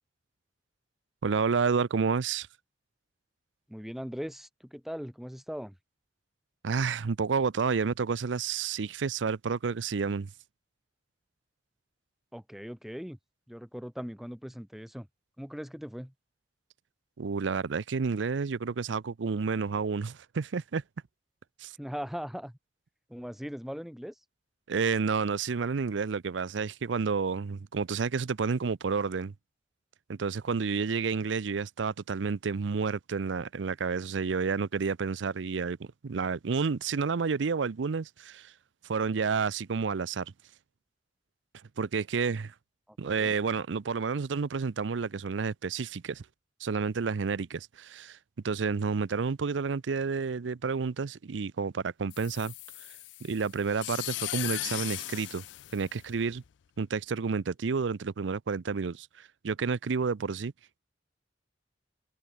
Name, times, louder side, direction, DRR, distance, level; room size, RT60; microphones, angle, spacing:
voice 1, 1.2-2.5 6.6-10.3 17.2-20.8 21.6-21.7 24.7-29.3 30.1-38.5 38.8-40.3 41.8-42.5 43.0-46.2 46.6-48.2 48.4-52.5 53.2-55.4 55.7-56.4 56.8-60.5, right 5 dB, 85° right, 0.5 m, -30 dB
voice 2, 3.7-5.8 12.3-13.2 13.5-15.1 15.4-16.1 21.8-22.6 23.1-24.1 42.9-43.3, equal, ahead, 0.6 m, -40 dB
sound 1, 52.1-56.5, left 17 dB, 70° left, 0.4 m, -38 dB
head